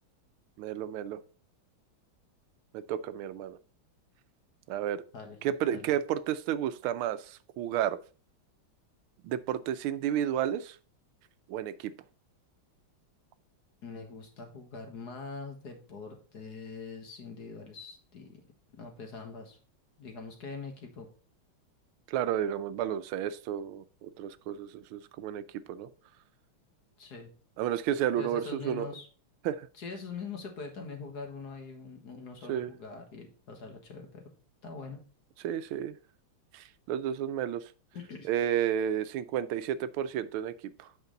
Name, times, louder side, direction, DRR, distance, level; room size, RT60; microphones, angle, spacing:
voice 1, 0.6-1.2 2.7-3.6 4.7-5.0 5.4-8.0 9.2-10.8 11.5-11.9 22.1-25.4 25.7-25.9 27.6-28.9 29.4-29.7 32.5-32.8 35.4-36.0 36.5-37.6 38.2-40.9, right 10 dB, 85° right, 13 dB, 1.4 m, -32 dB
voice 2, 13.8-18.4 18.8-19.6 20.0-21.1 27.0-27.3 28.2-29.1 29.8-34.2 34.6-35.0 37.9-38.3, left 4 dB, 50° left, 3 dB, 1.9 m, -43 dB
8.1 x 5.3 x 3.9 m, 0.38 s
omnidirectional pair, 2.3 m